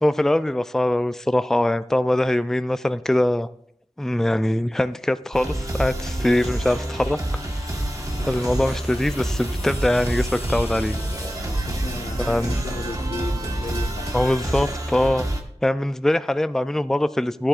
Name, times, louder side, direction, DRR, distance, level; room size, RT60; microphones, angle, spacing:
voice 1, 0.0-3.5 4.0-7.2 8.3-11.0 11.4-11.5 12.3-12.5 14.1-15.3 15.6-17.5, left 1 dB, 5° left, 12 dB, 0.4 m, -22 dB
sound 1, 5.3-15.4, right 1 dB, 35° right, 1.3 m, -27 dB
sound 2, 6.4-12.2, left 2 dB, 65° left, 1.3 m, -42 dB
voice 2, 8.0-8.4 11.6-14.7, left 2 dB, 85° left, 5 dB, 1.1 m, -36 dB
sound 3, 8.1-14.1, right 1 dB, 70° right, 3.3 m, -39 dB
14.0 x 10.5 x 2.4 m, 0.71 s
wide cardioid pair, 60°, 11 cm